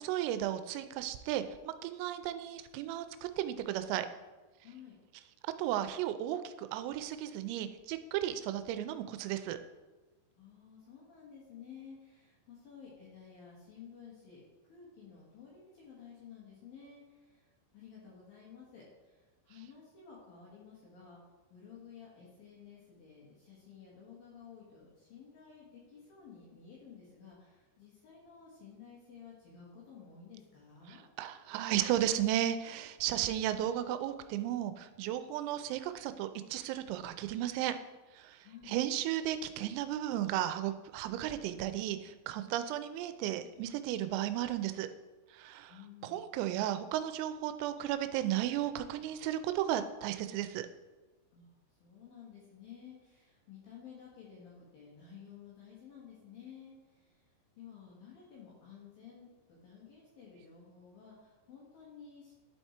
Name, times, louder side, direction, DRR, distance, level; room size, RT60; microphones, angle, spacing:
voice 1, 0.0-3.1 3.4-4.1 5.6-9.6 31.2-37.8 38.2-44.9 45.3-45.7 46.1-50.7, right 12 dB, 90° right, 10 dB, 3.3 m, -34 dB
voice 2, 4.6-5.0 10.4-21.2 21.5-31.0 38.4-38.8 45.7-46.2 51.3-51.5 51.8-57.3 57.6-62.3, left 7 dB, 60° left, -5 dB, 2.7 m, -53 dB
11.5 x 4.6 x 4.3 m, 1.2 s
omnidirectional pair, 5.9 m